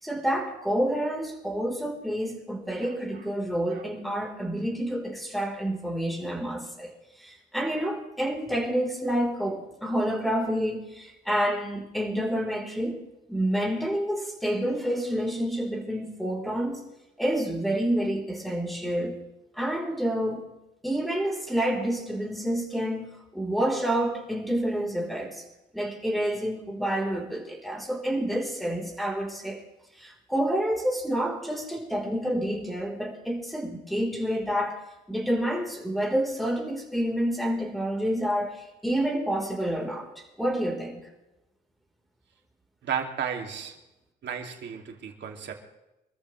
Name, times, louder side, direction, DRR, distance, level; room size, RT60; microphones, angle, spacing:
voice 1, 0.0-6.9 7.2-13.0 13.3-16.8 17.2-19.2 19.5-20.4 20.8-23.1 23.3-25.4 25.7-29.6 30.0-34.8 35.1-40.1 40.4-41.0, equal, ahead, 2 dB, 4.1 m, -28 dB
voice 2, 42.8-43.7 44.2-45.5, right 7 dB, 65° right, 3 dB, 2.6 m, -33 dB
25.5 x 13.5 x 3.3 m, 0.95 s
cardioid pair, 90°, 20 cm